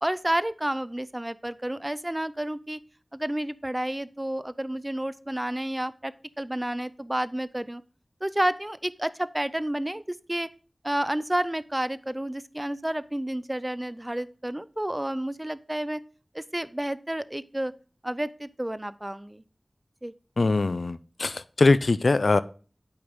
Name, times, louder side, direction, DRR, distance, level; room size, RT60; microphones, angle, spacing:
voice 1, 0.0-2.8 3.1-7.8 8.2-10.5 10.8-16.0 16.3-17.7 18.0-19.4 20.0-20.1, right 1 dB, 20° right, 16 dB, 0.4 m, -30 dB
voice 2, 20.4-22.4, left 3 dB, 85° left, 15 dB, 0.4 m, -22 dB
8.6 x 4.8 x 3.5 m, 0.38 s
wide cardioid pair, 55°, 0 cm